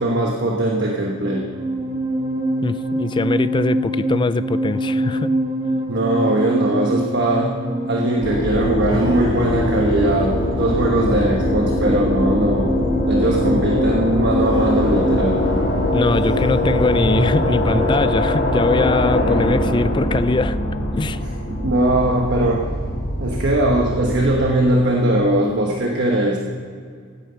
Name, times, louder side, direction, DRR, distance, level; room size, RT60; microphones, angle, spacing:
voice 1, 0.0-1.5 5.9-7.6 7.9-12.7 13.1-15.5 21.0-22.7 23.2-26.4, right 1 dB, 60° right, 1.2 m, -20 dB
sound 1, 1.0-19.5, right 1 dB, 20° right, 1.3 m, -25 dB
voice 2, 2.6-5.3 15.9-20.6 20.9-21.2, left 3 dB, 25° left, 0.3 m, -21 dB
sound 2, 8.2-24.2, left 1 dB, 45° left, 2.8 m, -22 dB
16.5 x 9.2 x 5.7 m
head